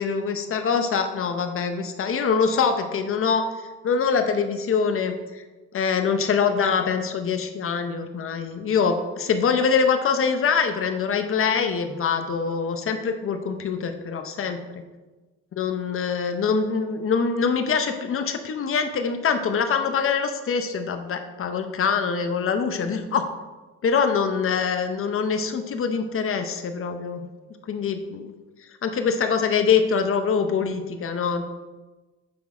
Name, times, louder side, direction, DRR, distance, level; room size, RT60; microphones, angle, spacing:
voice 1, 0.0-3.5 3.8-5.4 5.7-14.8 15.6-23.2 23.8-27.2 27.7-28.3 28.8-31.4, left 6 dB, 45° left, 7 dB, 0.7 m, -24 dB
6.1 x 3.5 x 4.8 m, 1.2 s
cardioid pair, 90°, 30 cm